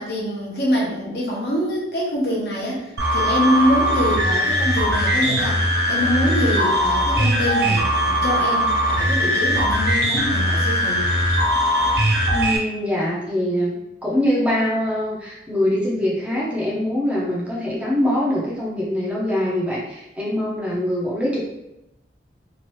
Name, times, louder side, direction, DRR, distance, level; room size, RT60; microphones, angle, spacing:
voice 1, 0.0-11.1, equal, 60° left, -4 dB, 0.9 m, -24 dB
sound 1, 3.0-12.6, equal, 70° right, 0.6 m, -20 dB
voice 2, 12.3-13.7 14.0-21.4, left 1 dB, 5° right, -6 dB, 0.6 m, -23 dB
3.0 x 2.5 x 3.0 m, 0.90 s
head